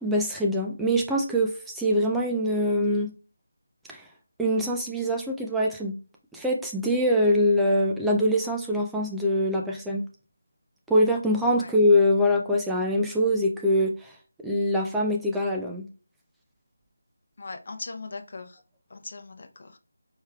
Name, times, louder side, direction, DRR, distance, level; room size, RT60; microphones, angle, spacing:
voice 1, 0.0-3.1 3.9-4.0 4.4-6.0 6.3-10.0 10.9-14.1 14.4-15.9, equal, 5° right, -1 dB, 0.4 m, -24 dB
voice 2, 17.4-18.6 18.9-19.8, left 3 dB, 50° left, 6 dB, 0.7 m, -39 dB
4.7 x 3.2 x 2.3 m, 0.36 s
figure-of-eight pair, 160°, 0 cm